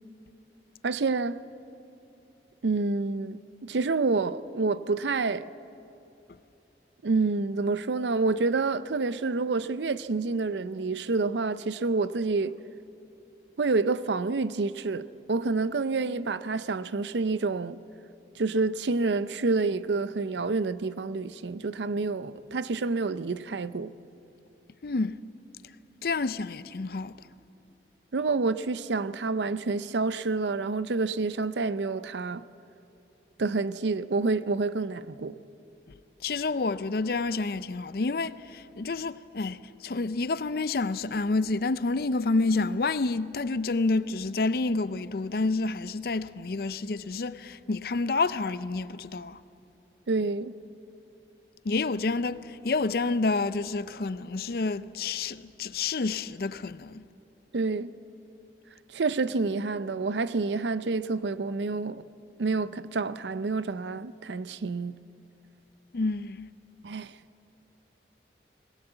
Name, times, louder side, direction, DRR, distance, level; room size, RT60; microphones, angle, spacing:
voice 1, 0.8-1.4 2.6-5.5 7.0-12.5 13.6-17.8 18.4-23.9 28.1-32.4 33.4-35.3 50.1-50.5 57.5-57.9 58.9-62.0 62.4-65.0 66.8-67.1, right 3 dB, 85° right, 0.6 m, -28 dB
voice 2, 24.8-25.2 26.0-27.2 36.2-49.4 51.6-57.0 65.9-66.5, left 3 dB, 55° left, 0.5 m, -29 dB
20.5 x 17.5 x 8.0 m
head